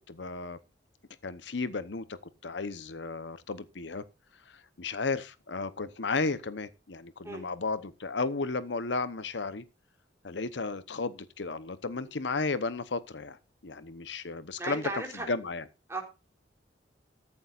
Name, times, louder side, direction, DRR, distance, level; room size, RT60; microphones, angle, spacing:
voice 1, 0.1-0.6 1.2-4.0 4.5-9.6 10.2-13.4 13.6-15.6, left 3 dB, 75° left, 0.9 m, -34 dB
voice 2, 14.6-15.3 15.9-16.0, right 2 dB, 15° right, 3.7 m, -35 dB
14.0 x 12.0 x 2.5 m
head